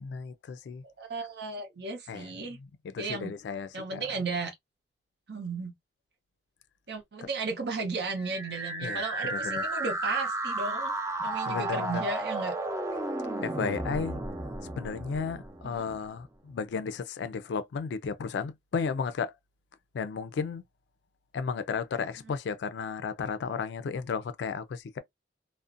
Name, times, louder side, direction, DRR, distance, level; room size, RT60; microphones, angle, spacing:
voice 1, 0.0-0.8 2.1-2.3 2.6-4.0 7.2-7.3 8.8-9.0 9.3-9.7 11.5-12.0 13.4-14.2 14.8-19.3 19.9-20.6 21.3-25.0, left 5 dB, 75° left, 0.3 m, -34 dB
voice 2, 0.8-2.6 3.0-3.3 3.7-4.5 5.3-5.7 6.9-10.9 11.2-12.5 15.6-15.8, right 3 dB, 70° right, 0.8 m, -34 dB
sound 1, 8.2-16.1, right 2 dB, 15° right, 0.5 m, -33 dB
2.4 x 2.1 x 2.4 m
head